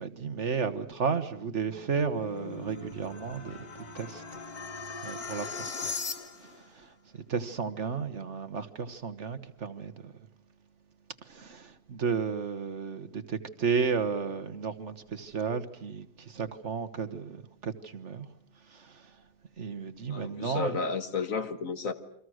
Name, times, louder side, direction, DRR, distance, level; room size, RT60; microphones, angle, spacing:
voice 1, 0.0-3.6 3.9-4.4 5.0-5.9 6.4-6.9 7.3-10.1 11.3-18.3 18.7-19.0 19.6-20.8, right 5 dB, 50° right, 1.5 m, -33 dB
sound 1, 1.5-6.6, left 4 dB, 80° left, 2.4 m, -39 dB
voice 2, 20.1-21.9, left 5 dB, 65° left, 1.9 m, -32 dB
29.0 x 24.5 x 6.4 m
omnidirectional pair, 1.6 m